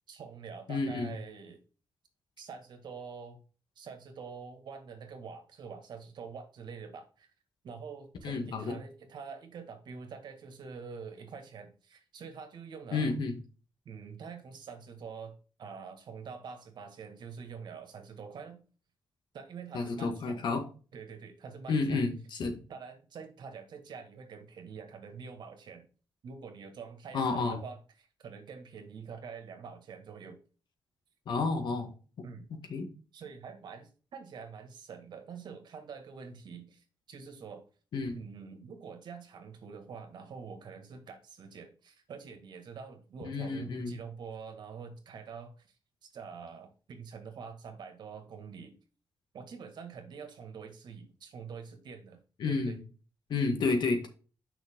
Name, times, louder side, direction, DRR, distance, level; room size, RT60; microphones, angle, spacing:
voice 1, 0.1-1.6 2.4-3.4 3.7-7.3 7.6-13.1 13.8-18.6 19.3-20.5 20.9-22.1 22.7-25.9 26.2-30.4 32.2-32.5 33.1-37.6 38.2-45.7 46.0-48.7 49.3-52.2 52.5-52.8, right 6 dB, 75° right, 7 dB, 1.9 m, -46 dB
voice 2, 0.7-1.2 8.2-8.7 12.9-13.4 19.7-20.6 21.7-22.6 27.1-27.6 31.3-31.9 32.7-32.9 37.9-38.2 43.2-43.9 52.4-52.8 53.3-54.1, left 4 dB, 80° left, 5 dB, 2.0 m, -30 dB
6.6 x 5.8 x 3.7 m, 0.36 s
cardioid pair, 85°, 8 cm